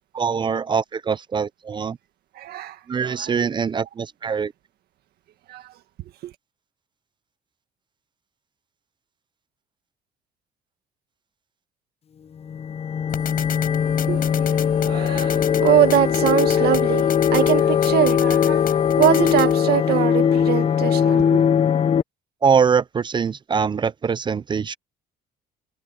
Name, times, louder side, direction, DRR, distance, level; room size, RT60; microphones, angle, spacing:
voice 1, 0.1-2.0 2.9-4.5 22.4-24.8, right 6 dB, 30° right, 0.5 m, -23 dB
voice 2, 2.4-3.4 5.5-5.7 6.2-6.3 14.1-14.5 14.8-21.4, right 13 dB, 70° right, 1.7 m, -23 dB
sound 1, 12.4-22.0, left 8 dB, 35° left, 0.7 m, -20 dB
sound 2, 13.1-19.6, left 10 dB, 55° left, 7.8 m, -35 dB
cardioid pair, 110°, 17 cm